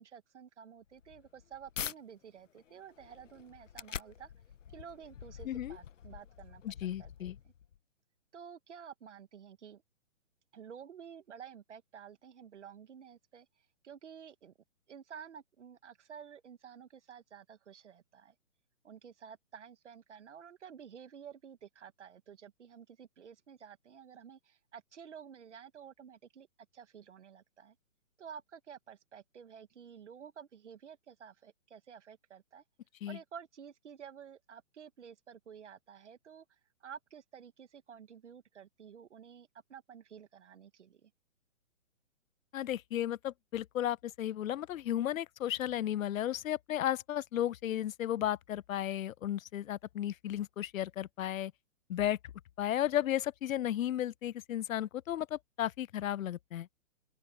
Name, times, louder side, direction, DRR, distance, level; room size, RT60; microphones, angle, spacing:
voice 1, 0.0-4.3 4.7-7.5 8.3-9.8 10.5-14.5 14.9-18.3 18.8-26.5 26.7-27.8 28.2-32.6 33.1-41.1, right 7 dB, 60° right, 1.5 m, -51 dB
sound 1, 0.8-2.0 2.5-7.8, left 8 dB, 65° left, 1.0 m, -46 dB
voice 2, 5.4-5.8 6.6-7.4 33.0-33.2 42.5-51.5 51.9-52.2 52.6-56.7, left 11 dB, 80° left, 0.5 m, -34 dB
open air
hypercardioid pair, 175°, 40 cm